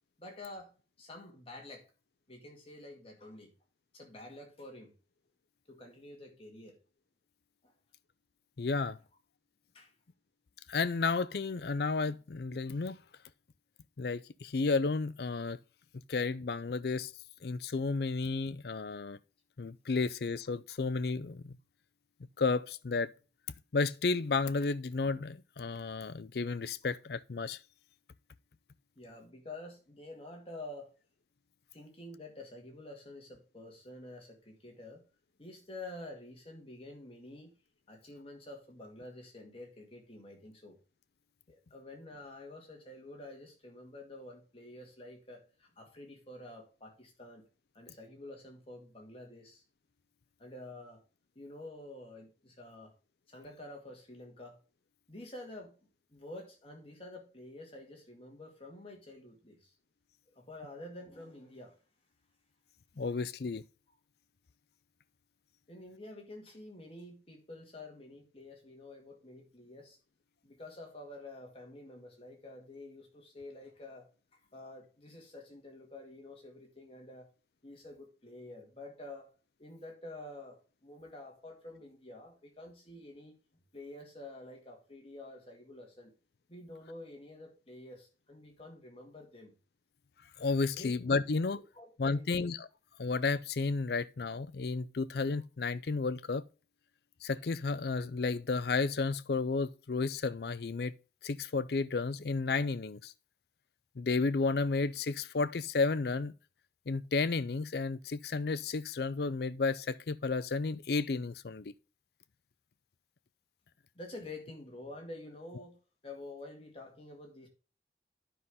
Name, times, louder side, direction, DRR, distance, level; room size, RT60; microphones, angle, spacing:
voice 1, 0.2-1.9 2.3-3.5 3.9-4.9 5.7-6.8 7.6-7.7 9.7-9.9 29.0-30.9 31.7-35.0 35.4-37.5 37.9-40.8 41.5-47.4 47.7-49.6 50.4-51.0 51.4-52.9 53.3-54.6 55.1-55.8 56.1-59.7 60.3-61.8 62.9-63.0 65.7-70.0 70.4-77.3 77.6-79.3 79.6-83.4 83.7-86.1 86.5-89.5 90.7-91.0 91.5-92.4 113.9-115.8 116.0-117.5, left 2 dB, 30° left, 2.1 m, -49 dB
voice 2, 8.6-9.0 10.7-13.0 14.0-15.6 16.1-17.1 17.4-19.2 19.6-21.6 22.4-23.1 23.7-27.6 63.0-63.6 90.4-91.6 92.0-92.7 93.0-96.4 97.2-100.9 101.2-103.1 104.0-106.3 106.9-111.7, left 4 dB, 60° left, 0.5 m, -32 dB
10.0 x 5.6 x 3.6 m
head